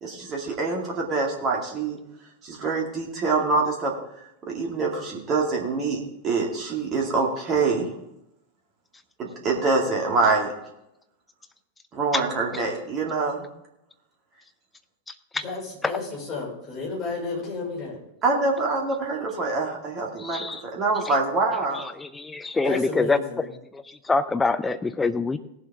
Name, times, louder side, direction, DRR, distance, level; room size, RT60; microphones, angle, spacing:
voice 1, 0.0-2.0 2.4-3.9 4.5-7.9 9.2-10.5 11.9-13.4 18.2-21.8, right 3 dB, 30° right, -1 dB, 2.2 m, -25 dB
voice 2, 15.4-18.0 22.6-23.4, left 4 dB, 30° left, -3 dB, 5.4 m, -32 dB
voice 3, 20.2-20.6 21.7-23.5 23.7-25.4, left 3 dB, 10° left, 10 dB, 0.6 m, -25 dB
18.0 x 7.6 x 3.6 m, 0.84 s
figure-of-eight pair, 90°, 0 cm